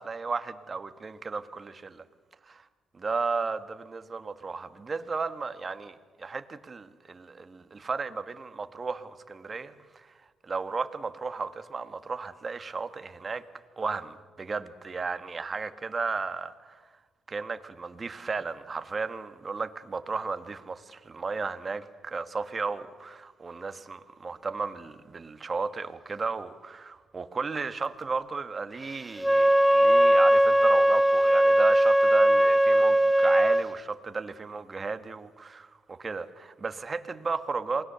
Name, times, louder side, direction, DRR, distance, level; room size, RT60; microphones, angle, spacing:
voice 1, 0.0-2.0 2.5-2.6 2.9-10.1 10.4-13.4 13.8-16.8 17.3-37.8, right 4 dB, 35° right, 10 dB, 1.4 m, -34 dB
Wind instrument woodwind instrument, 29.2-33.6, right 1 dB, 5° left, 0.9 m, -20 dB
27.5 x 20.0 x 6.9 m, 1.4 s
cardioid pair, 90°, 0 cm